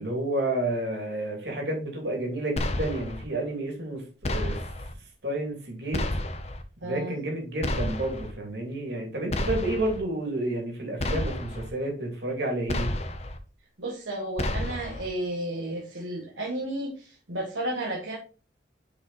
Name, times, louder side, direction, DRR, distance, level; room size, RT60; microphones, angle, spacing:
voice 1, 0.0-4.6 5.2-6.0 6.8-12.9, right 1 dB, 65° right, 0 dB, 2.8 m, -30 dB
sound 1, 2.6-3.2 4.2-4.9 5.9-6.6 7.6-8.3 9.3-10.0 11.0-11.7 12.7-13.4 14.4-15.1, left 1 dB, 35° left, 0.8 m, -30 dB
voice 2, 6.8-7.2 13.8-18.2, right 1 dB, 85° right, -1 dB, 1.5 m, -33 dB
6.9 x 5.1 x 4.1 m, 0.35 s
head